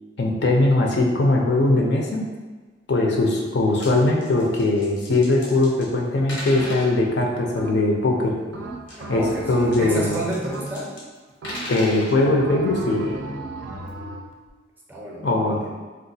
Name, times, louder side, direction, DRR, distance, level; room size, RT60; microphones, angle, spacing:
voice 1, 0.2-2.2 2.9-8.3 9.1-10.2 11.7-13.1 15.2-15.6, left 2 dB, 60° left, 0 dB, 0.5 m, -20 dB
sound 1, 3.5-3.9 4.2-5.9 6.3-6.9 8.8-11.0 11.3-12.2 13.9-14.0 14.5-14.6, left 1 dB, 90° left, 0.9 m, -37 dB
sound 2, 6.6-7.1 7.5-8.1 8.5-11.0 11.4-11.9 12.4-14.3, right 2 dB, 85° right, 0.4 m, -35 dB
voice 2, 9.0-10.9 14.9-15.8, right 1 dB, 10° right, -3 dB, 0.4 m, -30 dB
3.8 x 2.3 x 2.7 m, 1.3 s
head